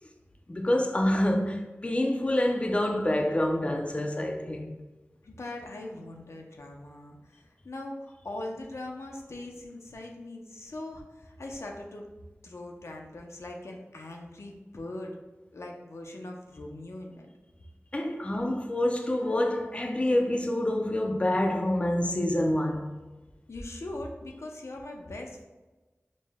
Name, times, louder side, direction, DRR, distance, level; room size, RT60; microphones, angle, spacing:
voice 1, 0.5-4.7 17.9-22.9, left 1 dB, 25° left, 0.4 m, -27 dB
voice 2, 5.2-12.0 12.4-15.1 15.5-17.3 23.5-25.4, left 1 dB, 80° left, 0.5 m, -41 dB
5.1 x 2.1 x 3.4 m
wide cardioid pair, 70°, 5 cm